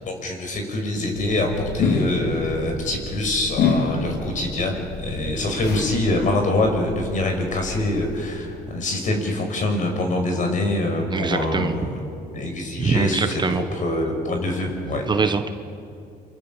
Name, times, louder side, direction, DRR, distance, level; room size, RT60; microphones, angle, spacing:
voice 1, 0.1-12.0 12.3-13.4 13.7-15.1, left 2 dB, 50° left, 3 dB, 6.1 m, -24 dB
sound 1, 1.0-8.3, left 4 dB, 85° left, 3.9 m, -28 dB
voice 2, 11.1-11.7 12.8-13.6 15.1-15.5, right 4 dB, 25° right, 8 dB, 1.3 m, -23 dB
28.5 x 23.5 x 7.5 m, 2.5 s
cardioid pair, 110°, 17 cm